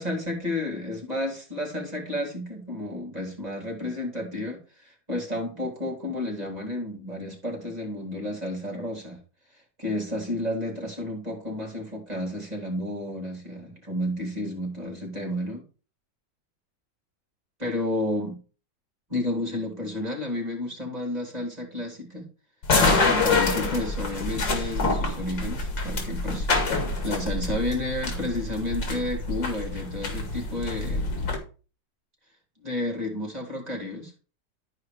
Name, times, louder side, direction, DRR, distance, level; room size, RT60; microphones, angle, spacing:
voice 1, 0.0-9.2 9.8-15.6 17.6-18.4 19.1-22.3 23.0-26.5 27.0-31.1 32.6-34.1, left 1 dB, 20° right, -1 dB, 3.5 m, -31 dB
sound 1, 22.6-31.4, left 3 dB, 85° left, 2.8 m, -26 dB
13.0 x 4.8 x 4.8 m, 0.35 s
omnidirectional pair, 1.9 m